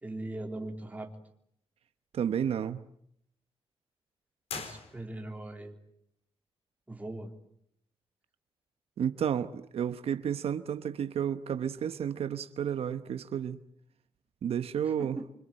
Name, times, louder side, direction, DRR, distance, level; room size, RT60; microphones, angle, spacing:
voice 1, 0.0-1.1 4.5-5.8 6.9-7.3 15.0-15.3, right 2 dB, 15° right, 3.7 m, -40 dB
voice 2, 2.1-2.8 9.0-13.6 14.4-15.2, right 8 dB, 75° right, 1.1 m, -31 dB
sound 1, 4.5-5.5, left 5 dB, 80° left, 4.3 m, -42 dB
26.0 x 25.5 x 9.0 m
wide cardioid pair, 135°, 10 cm